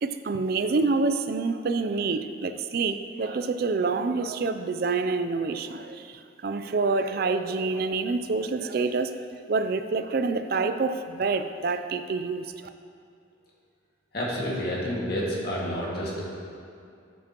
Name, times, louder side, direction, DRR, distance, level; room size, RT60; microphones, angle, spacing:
voice 1, 0.0-12.5, right 4 dB, 55° right, 10 dB, 0.4 m, -27 dB
voice 2, 14.1-16.3, equal, 55° left, -5 dB, 1.9 m, -29 dB
13.0 x 7.3 x 3.0 m, 2.4 s
head